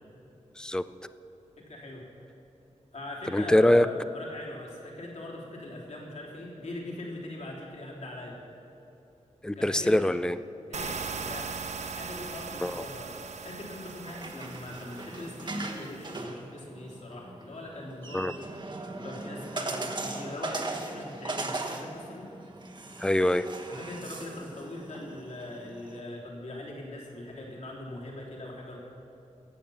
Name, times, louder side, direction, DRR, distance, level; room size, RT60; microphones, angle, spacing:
voice 1, 1.6-2.0 2.9-8.4 9.5-10.1 10.7-11.5 11.9-13.1 13.4-18.4 18.9-22.3 23.7-28.8, left 1 dB, 65° left, -3 dB, 3.2 m, -41 dB
voice 2, 3.3-3.9 9.4-10.4 12.6-12.7 18.1-18.3 23.0-23.5, left 1 dB, 5° left, 13 dB, 0.4 m, -23 dB
sound 1, 10.7-16.2, right 5 dB, 65° right, 0.8 m, -39 dB
sound 2, 13.8-26.0, right 2 dB, 40° right, 1.2 m, -39 dB
16.0 x 8.6 x 7.0 m, 2.9 s
wide cardioid pair, 130°, 13 cm